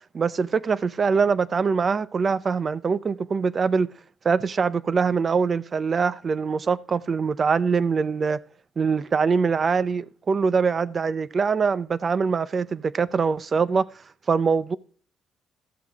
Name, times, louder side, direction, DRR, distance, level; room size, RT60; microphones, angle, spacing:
voice 1, 0.1-3.9 4.2-8.4 8.8-13.9 14.3-14.8, right 5 dB, 35° right, 0.6 m, -23 dB
13.0 x 7.7 x 3.5 m
cardioid pair, 125°, 0 cm